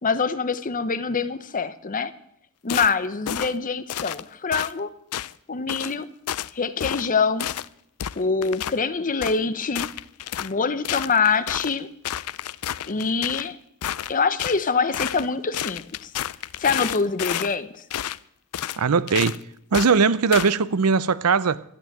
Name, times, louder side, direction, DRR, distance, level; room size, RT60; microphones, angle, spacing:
voice 1, 0.0-2.1 2.6-4.9 5.5-6.1 6.5-7.5 8.2-9.9 10.4-11.9 12.9-13.6 14.1-16.1 16.6-17.7, left 5 dB, 40° left, 0.8 m, -24 dB
sound 1, 2.7-2.9 3.3-3.5 3.9-4.2 4.5-4.7 5.1-5.3 5.7-5.9 6.3-6.5 6.8-7.1 7.4-7.7 8.0-8.8 9.2-9.4 9.7-10.5 10.8-11.8 12.0-13.5 13.8-14.6 14.9-15.3 15.5-17.5 17.9-18.2 18.5-18.8 19.1-19.4 19.7-19.9 20.3-20.5, left 11 dB, 80° left, 0.4 m, -30 dB
voice 2, 18.8-19.4 19.7-21.6, right 5 dB, 80° right, 0.6 m, -20 dB
13.5 x 9.2 x 9.0 m
head